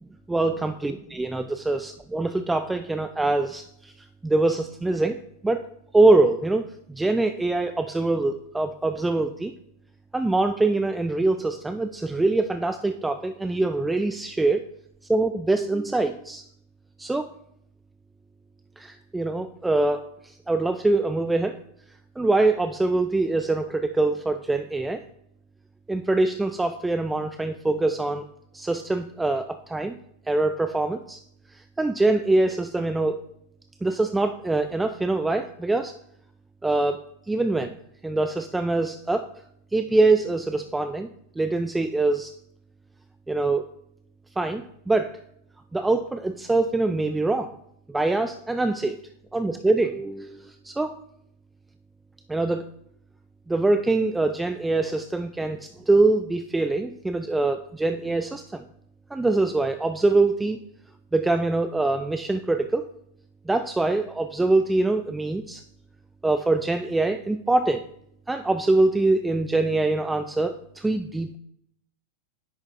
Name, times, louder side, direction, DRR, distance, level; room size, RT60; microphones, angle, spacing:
voice 1, 0.3-3.9 4.2-5.6 5.9-9.5 10.1-14.6 15.1-16.4 17.0-17.3 18.8-20.1 20.5-21.5 22.2-25.0 25.9-28.2 28.5-30.0 30.3-31.2 31.8-33.2 33.8-35.9 36.6-37.0 37.3-37.8 38.0-39.3 39.7-41.1 41.4-42.3 43.3-43.7 44.4-45.1 45.7-47.5 47.9-49.0 49.3-50.4 50.6-50.9 52.3-52.7 53.5-58.6 59.1-60.6 61.1-62.9 63.5-65.6 66.2-67.8 68.3-71.4, right 2 dB, 10° right, 8 dB, 0.4 m, -24 dB
10.0 x 3.5 x 3.7 m, 0.71 s
figure-of-eight pair, 90°, 0 cm